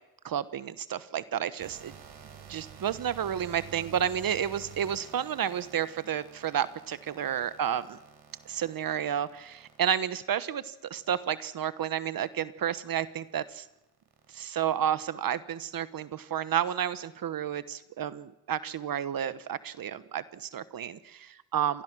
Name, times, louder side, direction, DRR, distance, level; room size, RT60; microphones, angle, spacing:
voice 1, 0.2-1.9 2.5-8.0 8.5-13.6 14.3-21.8, right 9 dB, 65° right, 14 dB, 1.1 m, -31 dB
sound 1, 1.6-10.2 10.9-11.4 12.0-12.3 12.7-14.4, right 8 dB, 80° right, 4.4 m, -50 dB
26.5 x 19.0 x 6.2 m, 0.96 s
cardioid pair, 85°, 38 cm